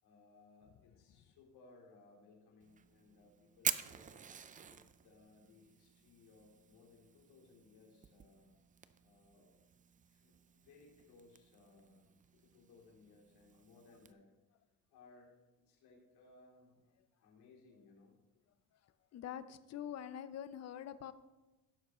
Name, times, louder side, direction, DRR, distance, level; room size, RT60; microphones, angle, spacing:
voice 1, 0.0-4.2 4.7-8.5 9.0-9.5 9.9-14.3 14.9-16.8 17.2-18.2, left 3 dB, 70° left, -1 dB, 3.2 m, -63 dB
Fire, 2.6-14.1, right 7 dB, 20° right, 0.4 m, -47 dB
voice 2, 19.1-21.1, left 9 dB, 40° left, 13 dB, 0.6 m, -45 dB
16.5 x 6.9 x 3.1 m, 1.1 s
cardioid pair, 115°, 39 cm